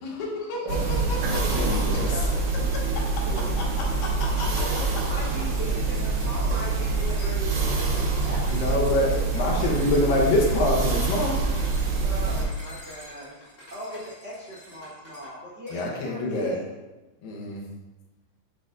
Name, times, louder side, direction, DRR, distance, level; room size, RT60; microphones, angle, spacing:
voice 1, 0.0-2.0 2.7-3.0 3.6-4.5, left 1 dB, 90° left, -6 dB, 3.6 m, -34 dB
voice 2, 0.6-2.3 8.5-11.4 15.7-16.6 17.2-17.7, left 1 dB, 70° left, -1 dB, 2.5 m, -26 dB
sound 1, 0.7-12.4, right 3 dB, 90° right, 1.2 m, -25 dB
voice 3, 1.2-2.2 3.3-3.7 4.6-10.2 12.0-13.4 13.7-16.6, right 1 dB, 50° right, -8 dB, 1.2 m, -38 dB
sound 2, 3.8-15.3 15.7-15.9, left 1 dB, 30° left, 1.1 m, -47 dB
8.7 x 4.7 x 2.6 m, 1.1 s
omnidirectional pair, 4.4 m